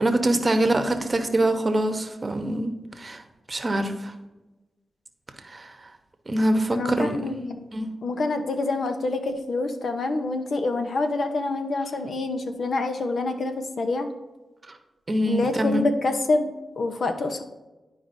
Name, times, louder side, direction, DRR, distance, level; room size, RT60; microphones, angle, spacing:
voice 1, 0.0-3.2 3.5-4.1 5.4-5.8 6.3-7.2 7.7-7.9 14.7-14.8 15.1-15.9, right 1 dB, 35° right, 7 dB, 0.9 m, -24 dB
voice 2, 6.7-7.7 8.0-14.1 15.2-17.4, left 3 dB, 70° left, 6 dB, 0.8 m, -26 dB
11.5 x 4.7 x 2.7 m, 1.1 s
cardioid pair, 65°, 0 cm